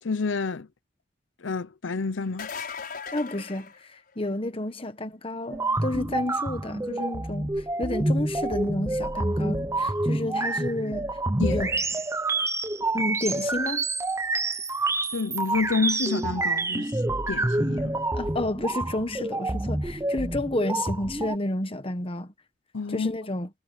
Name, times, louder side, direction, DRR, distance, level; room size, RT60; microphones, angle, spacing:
voice 1, 0.0-0.7 1.4-2.5 11.4-11.7 15.1-16.9 17.3-18.0 22.7-23.1, left 4 dB, 85° left, 0.8 m, -28 dB
sound 1, 2.2-4.5 10.0-10.1 11.9-12.0, left 6 dB, 50° left, 6.1 m, -38 dB
voice 2, 3.1-11.2 11.5-11.7 12.9-13.8 18.1-22.3 22.9-23.5, left 1 dB, 30° left, 1.4 m, -31 dB
sound 2, 5.5-21.4, right 2 dB, 15° right, 0.9 m, -28 dB
head